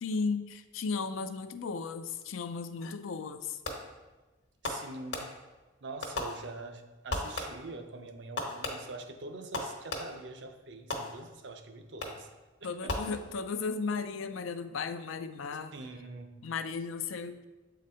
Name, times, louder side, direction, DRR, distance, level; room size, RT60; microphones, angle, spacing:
voice 1, 0.0-3.6 12.6-15.7 16.4-17.4, left 4 dB, 90° left, 10 dB, 0.4 m, -35 dB
Fireworks, 3.6-4.1 4.6-5.6 6.0-6.8 7.1-7.8 8.4-10.3 10.9-11.5 12.0-12.4 12.9-13.6, left 2 dB, 65° left, 1.1 m, -38 dB
voice 2, 4.6-5.3 5.8-12.3 12.6-13.2 15.7-16.4, right 3 dB, 60° right, 7 dB, 0.6 m, -44 dB
7.5 x 3.9 x 4.3 m, 1.2 s
head